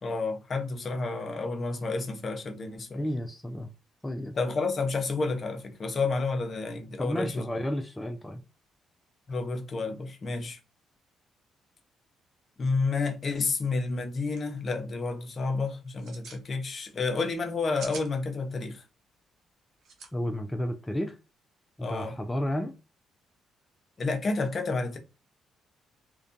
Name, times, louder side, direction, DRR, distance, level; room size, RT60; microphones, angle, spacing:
voice 1, 0.0-3.0 4.3-7.5 9.3-10.6 12.6-18.8 21.8-22.1 24.0-25.0, left 3 dB, 45° left, 0.6 m, -30 dB
voice 2, 3.0-3.7 4.0-4.4 7.0-8.4 20.1-21.2 21.8-22.7, equal, 10° left, 0.3 m, -32 dB
sound 1, 13.9-14.0 14.3-14.4 14.7-15.0 15.9-16.4 17.5-18.1 19.8-20.1, right 4 dB, 70° right, 0.7 m, -43 dB
2.5 x 2.1 x 2.5 m
cardioid pair, 90°, 0 cm